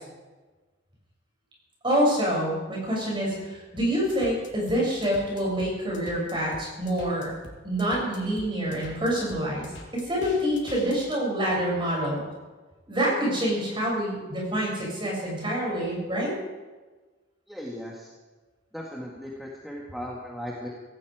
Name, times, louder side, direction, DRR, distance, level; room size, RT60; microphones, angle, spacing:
voice 1, 1.8-7.3 7.6-9.7 9.9-12.2 12.9-16.3, equal, 25° right, -3 dB, 7.1 m, -26 dB
sound 1, 3.8-11.0, left 2 dB, 75° left, 3.4 m, -45 dB
voice 2, 17.5-18.1 18.7-20.7, equal, ahead, -3 dB, 1.8 m, -37 dB
17.5 x 17.0 x 5.0 m, 1.3 s
head